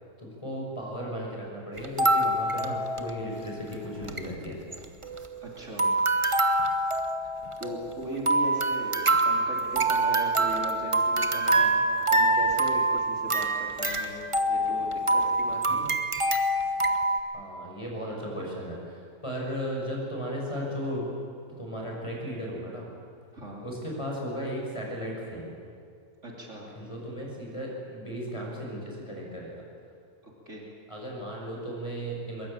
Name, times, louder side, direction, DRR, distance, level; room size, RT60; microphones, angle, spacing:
voice 1, 0.2-4.6 5.3-5.4 7.7-7.8 15.7-15.8 17.3-21.1 21.6-22.9 23.6-25.5 26.7-29.6 30.9-32.5, equal, 20° left, -2 dB, 6.3 m, -35 dB
sound 1, 1.8-3.5 3.7-3.8 4.0-4.3 4.7-5.5 5.8-17.2, right 2 dB, 20° right, 1.2 m, -25 dB
voice 2, 5.4-5.9 7.2-7.3 7.6-14.2 14.5-16.0 23.3-23.7 26.2-26.8 30.2-30.7, equal, 50° right, -2 dB, 3.5 m, -39 dB
22.5 x 22.0 x 8.9 m, 2.3 s
omnidirectional pair, 1.6 m